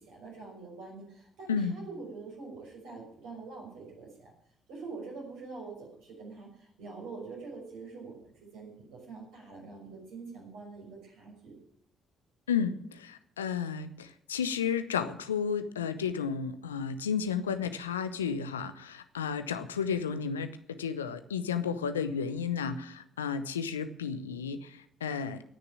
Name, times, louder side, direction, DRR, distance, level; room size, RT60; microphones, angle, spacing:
voice 1, 0.0-4.3 4.7-11.6 22.6-22.8, right 4 dB, 70° right, -1 dB, 6.0 m, -45 dB
voice 2, 12.5-25.4, left 6 dB, 85° left, 11 dB, 0.7 m, -32 dB
18.0 x 6.8 x 8.8 m, 0.69 s
figure-of-eight pair, 45°, 0 cm